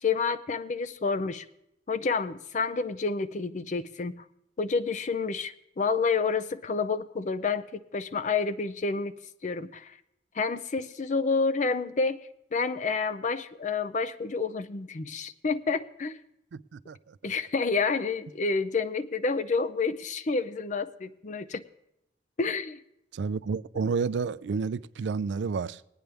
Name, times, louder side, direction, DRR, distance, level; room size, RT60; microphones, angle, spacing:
voice 1, 0.0-1.4 1.9-4.2 4.6-9.2 9.4-9.9 10.4-12.2 12.5-16.2 17.2-21.6 22.4-22.8, left 4 dB, 45° left, 0.5 m, -29 dB
voice 2, 16.5-17.3 23.1-25.8, right 5 dB, 80° right, 0.4 m, -31 dB
19.5 x 9.2 x 3.4 m
head